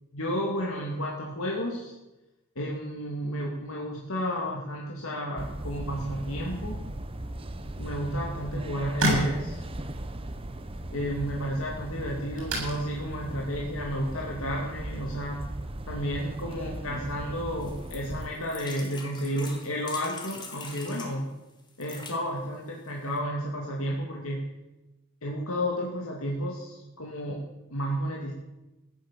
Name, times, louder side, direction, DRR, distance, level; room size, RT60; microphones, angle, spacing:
voice 1, 0.1-1.9 2.6-6.8 7.8-9.6 10.9-15.5 15.9-21.3 21.8-24.4 25.2-28.3, equal, 65° left, -2 dB, 2.5 m, -32 dB
sound 1, 5.4-18.3, right 1 dB, 25° right, 1.0 m, -37 dB
sound 2, 8.1-15.4, right 1 dB, 65° right, 7.2 m, -35 dB
sound 3, 17.6-21.1 21.7-22.2 22.9-23.0 23.2-23.3, left 3 dB, 20° left, 2.3 m, -43 dB
15.5 x 11.5 x 7.5 m, 1.0 s
head